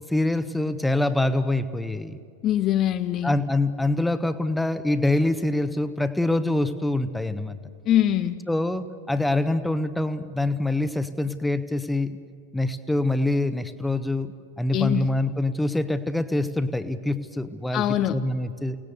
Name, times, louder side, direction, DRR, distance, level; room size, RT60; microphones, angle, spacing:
voice 1, 0.1-2.2 3.2-7.6 8.5-12.2 12.5-17.8 18.1-18.8, left 2 dB, 5° left, 11 dB, 1.0 m, -25 dB
voice 2, 2.4-3.4 7.9-8.4 14.7-15.1 17.7-18.2, left 12 dB, 35° left, 11 dB, 0.6 m, -23 dB
29.0 x 18.5 x 8.0 m, 2.2 s
figure-of-eight pair, 90°, 0 cm